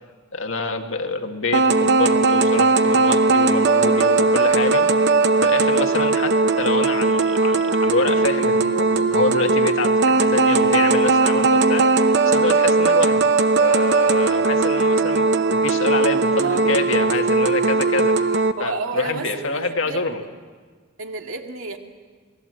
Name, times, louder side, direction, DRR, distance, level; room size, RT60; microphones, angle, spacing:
voice 1, 0.3-4.9 5.4-11.9 12.2-13.3 13.6-20.2, left 3 dB, 65° left, 5 dB, 1.9 m, -26 dB
sound 1, 1.5-18.5, right 3 dB, 55° right, 0.9 m, -18 dB
voice 2, 16.4-16.9 18.6-20.3 21.0-21.8, right 3 dB, 80° right, 4 dB, 2.2 m, -31 dB
28.5 x 19.5 x 7.8 m, 1.5 s
head